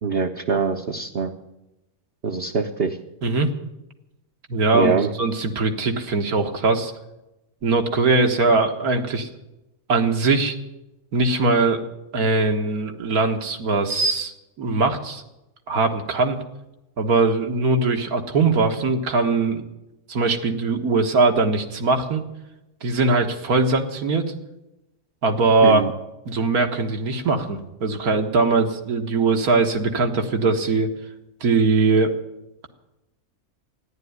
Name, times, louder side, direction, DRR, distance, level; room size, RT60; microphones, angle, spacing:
voice 1, 0.0-1.3 2.2-3.0 4.7-5.1 25.6-25.9, right 5 dB, 45° right, 3 dB, 1.0 m, -23 dB
voice 2, 3.2-3.5 4.5-4.9 5.2-6.9 7.6-9.3 9.9-10.6 11.1-11.8 12.1-15.2 15.7-16.4 17.0-19.6 20.1-22.2 22.8-24.3 25.2-25.8 26.3-30.9 31.4-32.1, right 3 dB, 75° right, 5 dB, 2.0 m, -21 dB
14.0 x 11.0 x 9.5 m, 0.93 s
omnidirectional pair, 1.6 m